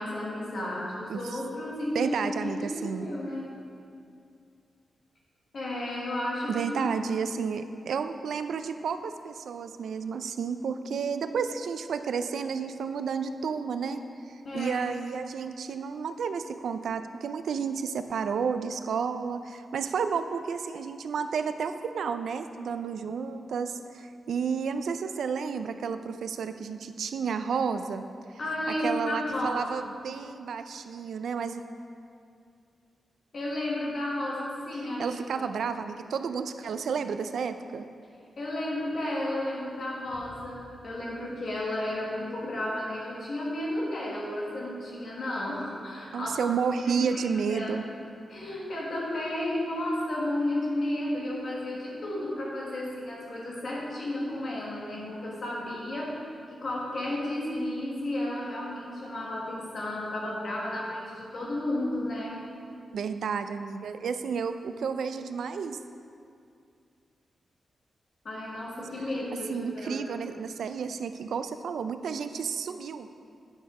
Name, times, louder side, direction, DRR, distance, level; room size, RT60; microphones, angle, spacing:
voice 1, 0.0-3.5 5.5-6.8 14.4-14.8 28.4-29.6 33.3-35.4 38.4-46.3 46.9-47.2 47.5-48.0 48.3-56.2 56.5-62.4 68.2-70.0, left 1 dB, 50° left, -4 dB, 1.5 m, -33 dB
voice 2, 1.9-3.1 6.5-14.0 14.5-28.0 28.8-31.6 35.0-37.8 46.1-47.8 62.9-65.8 69.5-73.1, right 6 dB, 85° right, 9 dB, 0.4 m, -31 dB
9.2 x 5.4 x 4.8 m, 2.4 s
wide cardioid pair, 160°, 0 cm